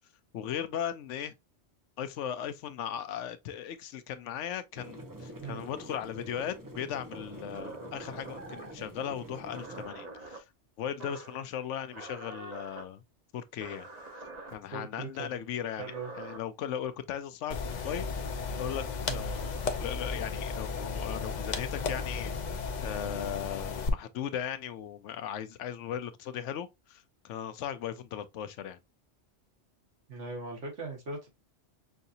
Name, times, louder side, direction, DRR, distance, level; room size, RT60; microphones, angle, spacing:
voice 1, 0.3-1.3 2.0-10.5 10.8-13.0 13.3-13.9 14.5-18.1 18.6-19.5 19.8-28.8, left 9 dB, 85° left, 0.9 m, -37 dB
sound 1, 4.7-9.9, right 1 dB, 20° right, 0.6 m, -46 dB
sound 2, 7.1-8.8 9.5-10.4 11.0-11.4 11.9-12.8 13.6-14.5 15.6-16.4, right 2 dB, 35° right, 1.0 m, -45 dB
voice 2, 14.7-15.3 15.8-16.1 19.0-19.2 30.1-31.3, right 3 dB, 75° right, 1.8 m, -39 dB
sound 3, 17.5-23.9, left 5 dB, 50° left, 0.6 m, -34 dB
5.5 x 2.7 x 2.5 m
omnidirectional pair, 1.2 m